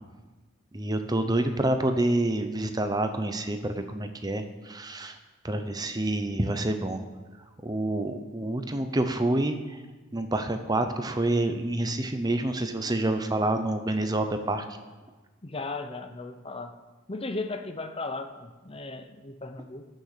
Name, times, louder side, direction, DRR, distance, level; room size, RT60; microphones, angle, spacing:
voice 1, 0.7-5.2 5.4-7.0 7.6-9.8 10.1-14.7, right 1 dB, 20° right, 7 dB, 0.7 m, -28 dB
voice 2, 15.4-16.8 17.1-19.9, left 3 dB, 25° left, 7 dB, 0.7 m, -36 dB
17.5 x 6.5 x 6.6 m, 1.3 s
head